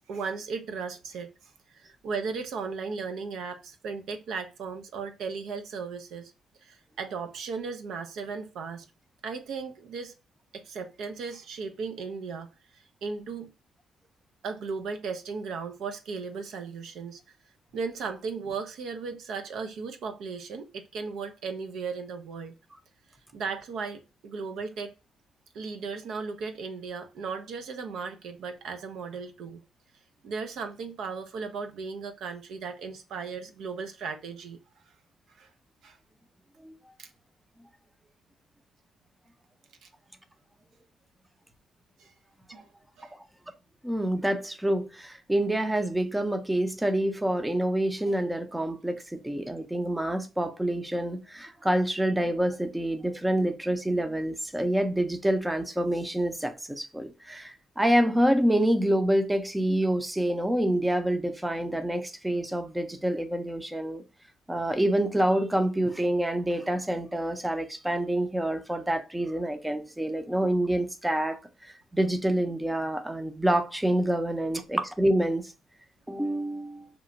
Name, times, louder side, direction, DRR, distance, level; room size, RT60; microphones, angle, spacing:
voice 1, 0.1-6.3 6.6-8.9 9.2-10.1 10.5-12.5 12.7-13.5 14.4-17.2 17.7-22.5 23.3-24.9 25.5-29.6 30.2-34.6 35.3-35.5 35.8-36.0 37.0-37.1 39.8-39.9 42.0-42.1 42.5-42.7 43.0-43.1, right 5 dB, 75° right, 0.4 m, -36 dB
voice 2, 43.8-64.0 64.5-75.5 76.1-76.9, right 1 dB, 10° right, 0.5 m, -27 dB
2.9 x 2.1 x 2.5 m
cardioid pair, 90°, 0 cm